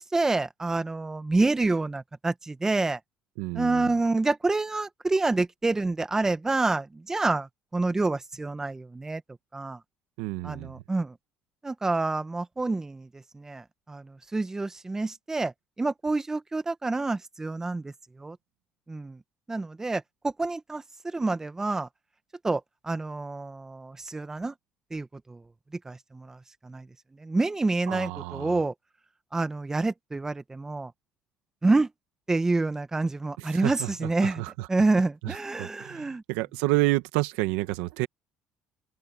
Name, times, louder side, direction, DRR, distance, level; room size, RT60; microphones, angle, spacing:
voice 1, 0.0-3.0 3.5-9.2 9.5-9.8 10.4-11.2 11.6-18.4 18.9-19.2 19.5-21.9 22.4-24.5 24.9-25.4 25.8-28.7 29.3-30.9 31.6-31.9 32.3-34.4 34.7-36.2, right 3 dB, 20° right, 1.6 m, -28 dB
voice 2, 3.4-3.9 10.2-10.7 27.9-28.6 33.4-33.9 34.2-34.7 35.2-38.1, right 19 dB, 85° right, 1.8 m, -29 dB
open air
supercardioid pair, 70°, 3 cm